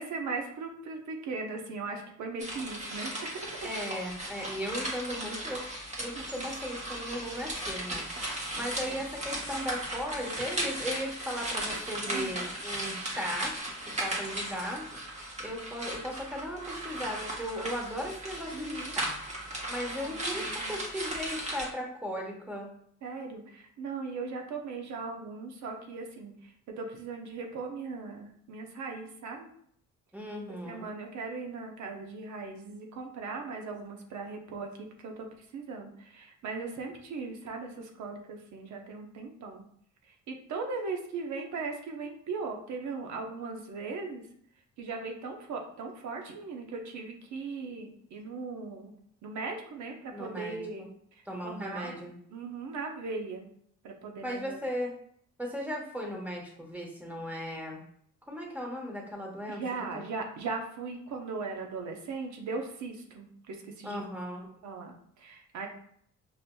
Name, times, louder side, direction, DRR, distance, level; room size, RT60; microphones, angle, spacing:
voice 1, 0.0-3.7 6.1-6.5 8.8-9.0 12.1-12.4 18.5-19.0 19.9-20.8 23.0-29.5 30.7-35.3 35.5-39.6 40.3-44.2 44.8-49.0 49.2-50.9 51.4-52.0 52.3-53.5 53.8-54.6 59.5-64.0 64.6-65.7, right 4 dB, 70° right, 3 dB, 0.8 m, -38 dB
sound 1, 2.4-21.7, right 1 dB, 25° right, 1.2 m, -36 dB
voice 2, 3.6-5.6 6.0-13.5 13.8-19.2 19.7-22.7 30.1-30.9 50.1-50.6 51.3-52.1 54.2-54.9 55.4-57.8 58.3-59.6 63.8-64.5, equal, 5° right, 0 dB, 1.1 m, -37 dB
6.0 x 2.5 x 2.3 m, 0.66 s
cardioid pair, 90°, 30 cm